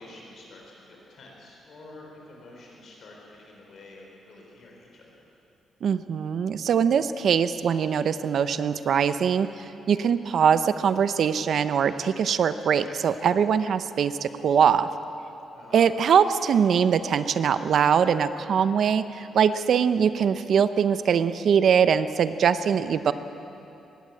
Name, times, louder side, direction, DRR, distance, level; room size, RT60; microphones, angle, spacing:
voice 1, 0.0-5.1 15.5-15.8, left 2 dB, 45° left, -2 dB, 4.1 m, -48 dB
voice 2, 5.8-14.9 15.7-23.1, right 7 dB, 50° right, 12 dB, 0.7 m, -22 dB
21.0 x 16.5 x 8.6 m, 2.9 s
cardioid pair, 180°, 0 cm